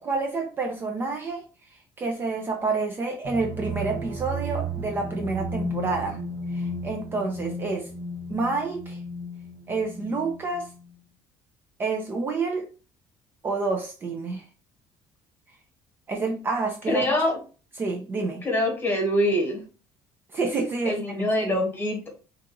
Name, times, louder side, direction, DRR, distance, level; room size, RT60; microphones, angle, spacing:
voice 1, 0.0-1.4 1.7-6.2 6.5-7.9 8.3-9.0 9.7-10.7 11.8-12.7 13.4-14.4 16.1-17.2 17.8-18.5 20.3-21.6, right 3 dB, 25° right, 2 dB, 0.5 m, -28 dB
sound 1, 3.2-10.9, right 1 dB, 55° right, 1.0 m, -34 dB
voice 2, 16.9-17.4 18.4-19.6 20.8-22.1, left 1 dB, 25° left, 2 dB, 1.3 m, -24 dB
2.8 x 2.6 x 3.6 m, 0.36 s
cardioid pair, 150°, 9 cm